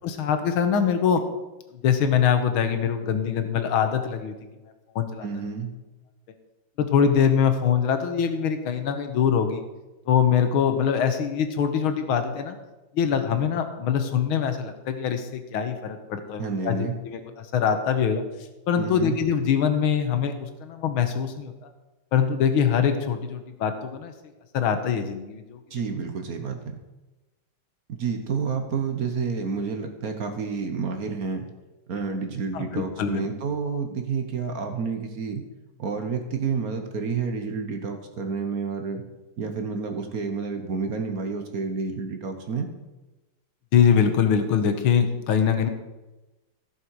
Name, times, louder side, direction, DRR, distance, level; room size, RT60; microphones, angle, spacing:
voice 1, 0.0-1.2 1.8-4.3 5.0-5.3 6.8-9.6 10.1-12.6 12.9-18.3 18.7-21.5 22.1-24.1 24.5-25.6 32.5-33.3 43.7-45.7, left 7 dB, 75° left, 8 dB, 1.8 m, -23 dB
voice 2, 5.2-5.7 16.4-17.0 18.8-19.2 25.7-26.8 27.9-31.5 31.9-35.4 35.8-39.0 39.4-42.7, right 5 dB, 50° right, 5 dB, 1.2 m, -29 dB
15.5 x 6.6 x 4.7 m, 1.1 s
omnidirectional pair, 2.3 m